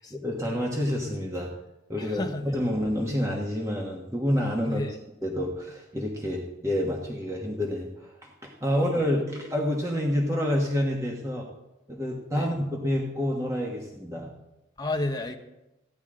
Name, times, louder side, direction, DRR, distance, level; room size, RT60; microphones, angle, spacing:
voice 1, 0.1-1.5 1.9-4.8 5.2-8.1 8.4-11.5 11.9-14.3, equal, 15° right, -1 dB, 1.2 m, -28 dB
voice 2, 2.0-2.6 4.6-5.0 8.6-9.0 12.3-12.5 14.8-15.4, left 2 dB, 20° left, 3 dB, 1.0 m, -32 dB
15.5 x 10.0 x 3.8 m, 0.94 s
head